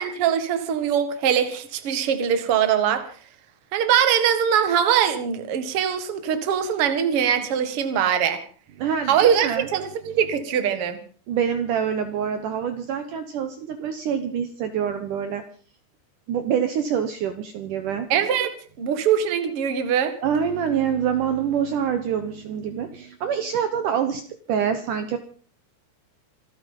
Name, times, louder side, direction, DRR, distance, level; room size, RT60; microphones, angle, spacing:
voice 1, 0.0-3.0 3.7-8.4 9.1-11.0 18.1-18.5 18.8-20.1, right 8 dB, 55° right, 9 dB, 1.6 m, -22 dB
voice 2, 8.8-9.7 11.3-15.4 16.3-18.1 20.2-24.2 24.5-25.2, right 8 dB, 85° right, 9 dB, 1.8 m, -26 dB
27.0 x 9.8 x 5.4 m, 0.43 s
omnidirectional pair, 5.4 m